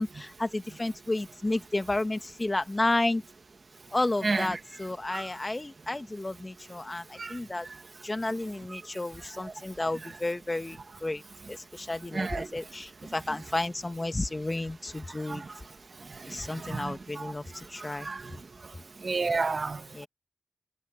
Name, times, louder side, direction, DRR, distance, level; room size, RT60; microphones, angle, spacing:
voice 1, 0.0-3.2 3.9-7.7 8.0-11.2 11.5-15.4 16.3-18.1 19.9-20.1, left 2 dB, 30° left, 1.7 m, -32 dB
voice 2, 12.1-12.5 15.3-15.4 16.6-17.2 18.0-18.2 19.0-19.8, right 3 dB, 50° right, 1.4 m, -30 dB
cardioid pair, 50°, 0 cm